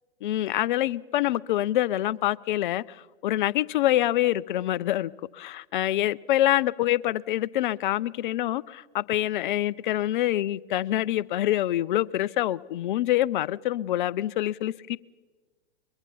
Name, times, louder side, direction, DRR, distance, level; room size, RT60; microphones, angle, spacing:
voice 1, 0.2-15.0, left 14 dB, 50° left, 0.6 m, -26 dB
23.0 x 22.5 x 5.5 m
hypercardioid pair, 115°, 32 cm